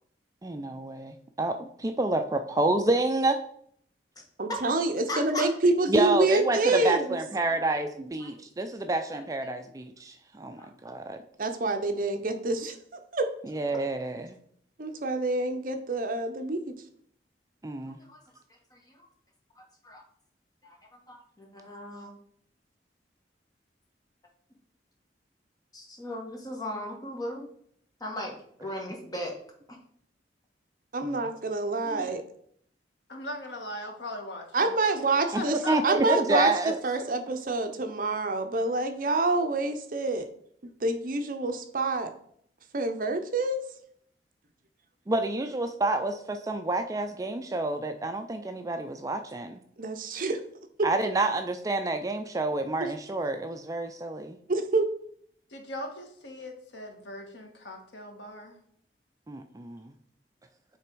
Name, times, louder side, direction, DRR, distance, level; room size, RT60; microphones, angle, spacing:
voice 1, 0.4-3.4 5.9-11.2 13.5-14.3 17.6-18.0 31.0-31.3 35.3-36.8 45.1-49.6 50.8-54.4 59.3-59.9, right 2 dB, 20° right, 7 dB, 0.4 m, -28 dB
voice 2, 4.4-7.1 11.4-12.7 13.1-13.3 14.8-16.6 30.9-32.2 34.5-35.6 35.8-36.5 36.8-40.3 40.8-42.1 42.7-43.6 49.8-50.4 52.8-52.9 54.5-54.9, right 2 dB, 50° right, 6 dB, 0.7 m, -27 dB
voice 3, 5.1-5.5 8.2-8.3 10.6-10.7 17.9-18.2 18.7-19.1 19.6-20.0 20.6-20.8 21.1-22.1 25.7-27.4 28.0-29.4 31.8-32.1, left 1 dB, 20° left, 0 dB, 1.3 m, -38 dB
voice 4, 33.1-34.8 35.3-35.8 55.5-58.5, left 1 dB, 80° left, 3 dB, 1.4 m, -39 dB
8.3 x 3.4 x 4.5 m, 0.65 s
head